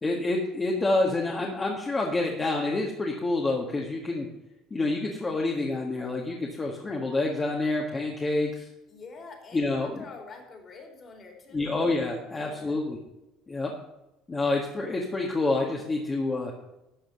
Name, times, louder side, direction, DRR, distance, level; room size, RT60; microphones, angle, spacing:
voice 1, 0.0-4.3 4.7-8.6 9.5-10.0 11.5-13.0 13.5-13.7 14.3-16.5, left 2 dB, 20° left, -1 dB, 1.7 m, -28 dB
voice 2, 8.9-11.7 12.3-12.8, left 4 dB, 40° left, 2 dB, 3.3 m, -46 dB
12.5 x 5.0 x 7.5 m, 0.93 s
supercardioid pair, 105°, 0 cm